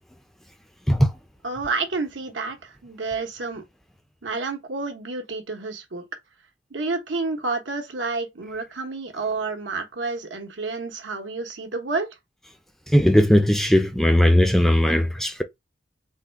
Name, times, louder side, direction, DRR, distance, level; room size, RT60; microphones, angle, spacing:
voice 1, 1.4-3.6 4.2-6.0 6.7-12.1, right 3 dB, 80° right, 1.0 m, -29 dB
voice 2, 12.9-15.4, equal, ahead, 0.4 m, -18 dB
3.7 x 2.3 x 4.4 m
head